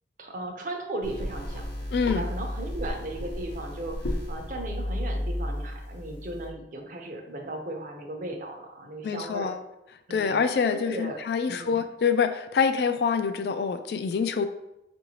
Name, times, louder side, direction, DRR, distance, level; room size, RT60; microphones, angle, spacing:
voice 1, 0.2-9.5 10.1-11.2 11.5-11.8, right 1 dB, 45° right, 2 dB, 0.7 m, -37 dB
sound 1, 1.0-6.5, left 1 dB, 90° left, 0.8 m, -33 dB
voice 2, 1.9-2.3 9.0-9.6 10.1-14.4, left 6 dB, 65° left, 9 dB, 0.3 m, -26 dB
5.5 x 2.6 x 3.0 m, 0.89 s
head